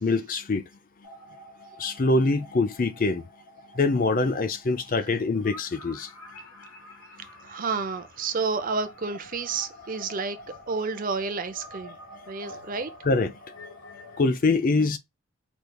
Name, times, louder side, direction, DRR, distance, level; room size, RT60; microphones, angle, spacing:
voice 1, 0.0-0.6 1.8-3.2 3.8-6.1 13.1-13.3 14.2-15.0, left 3 dB, 40° left, 0.5 m, -24 dB
sound 1, 1.0-14.2, left 1 dB, 85° left, 1.6 m, -47 dB
voice 2, 7.4-10.4 10.7-11.9 12.3-12.9, right 4 dB, 35° right, 0.5 m, -30 dB
5.2 x 3.2 x 2.2 m
head